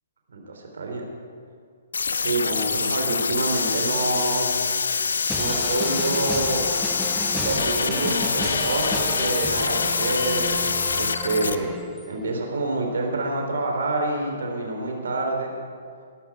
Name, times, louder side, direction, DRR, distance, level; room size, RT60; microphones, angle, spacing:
voice 1, 0.3-1.0 2.1-4.5 5.4-6.7 7.3-10.4 10.9-11.7 12.1-15.6, right 2 dB, 60° right, 1 dB, 3.4 m, -27 dB
sound 1, 1.9-11.6, left 5 dB, 65° left, 0.8 m, -25 dB
sound 2, 5.3-12.2, right 1 dB, ahead, 0.8 m, -34 dB
20.5 x 11.5 x 4.8 m, 2.2 s
figure-of-eight pair, 120°, 0 cm